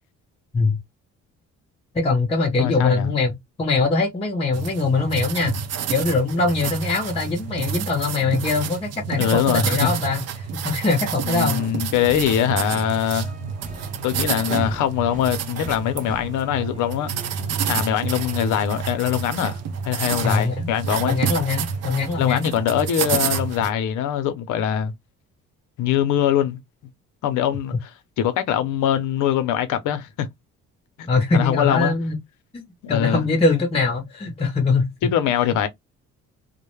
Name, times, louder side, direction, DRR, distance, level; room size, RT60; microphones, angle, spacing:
voice 1, 1.9-5.6 5.9-11.6 20.2-20.7 21.0-22.5 31.1-32.2 32.5-32.6 32.9-34.9, left 3 dB, 20° left, 0.6 m, -22 dB
voice 2, 2.6-3.1 9.2-10.0 11.3-13.3 14.0-17.1 17.7-19.6 19.8-21.2 22.2-24.9 25.8-26.6 27.2-27.9 28.2-30.3 31.0-31.9 32.8-33.2 35.0-35.7, left 10 dB, 85° left, 0.6 m, -22 dB
sound 1, 4.5-23.7, right 7 dB, 55° right, 0.5 m, -29 dB
sound 2, 11.9-20.6 21.0-22.2, right 1 dB, 25° right, 0.8 m, -43 dB
2.1 x 2.0 x 3.0 m
cardioid pair, 90°, 30 cm